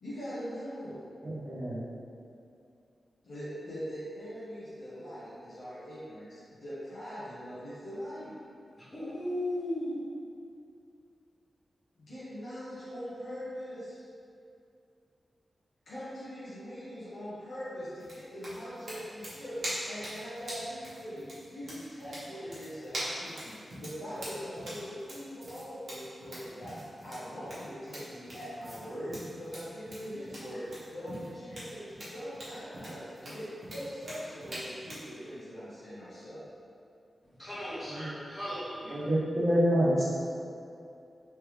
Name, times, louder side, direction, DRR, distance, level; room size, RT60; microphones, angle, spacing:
voice 1, 0.0-1.0 3.2-8.3 12.0-14.0 15.9-36.4, equal, 65° left, -12 dB, 1.0 m, -41 dB
voice 2, 1.2-1.8 38.9-40.1, equal, 30° right, -7 dB, 0.7 m, -27 dB
voice 3, 8.8-9.9 37.4-39.0, left 1 dB, 20° left, -12 dB, 1.3 m, -36 dB
sound 1, 18.0-35.1, equal, 60° right, 1.1 m, -43 dB
3.3 x 3.3 x 3.2 m, 2.5 s
wide cardioid pair, 160°, 0 cm